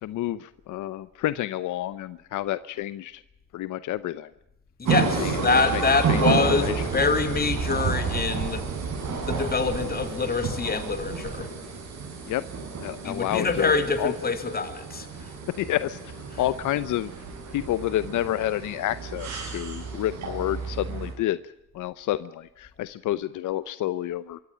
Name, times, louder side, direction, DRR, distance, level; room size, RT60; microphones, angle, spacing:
voice 1, 0.0-3.2 3.5-4.3 5.2-5.4 5.7-5.8 6.1-6.8 12.3-12.5 12.8-14.1 15.6-17.1 17.5-21.4 21.7-24.4, left 14 dB, 80° left, 15 dB, 0.8 m, -29 dB
voice 2, 4.8-8.6 9.3-11.5 13.0-15.1, left 4 dB, 30° left, 8 dB, 3.4 m, -25 dB
sound 1, 4.9-21.1, right 5 dB, 65° right, 7.7 m, -31 dB
25.0 x 14.5 x 8.7 m, 0.86 s
cardioid pair, 90°, 30 cm